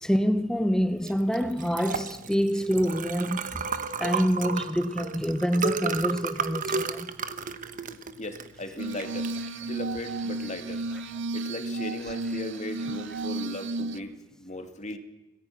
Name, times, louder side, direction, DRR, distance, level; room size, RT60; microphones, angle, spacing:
voice 1, 0.0-3.6 4.0-7.1, equal, 5° left, 0.9 m, -26 dB
Liquid, 1.0-11.2, right 5 dB, 40° right, 1.2 m, -34 dB
voice 2, 8.2-9.3 9.7-10.8 11.3-14.1 14.4-15.0, left 1 dB, 35° left, 2.3 m, -37 dB
Glass, 8.8-14.0, right 2 dB, 65° right, 0.8 m, -33 dB
25.5 x 19.0 x 6.1 m
head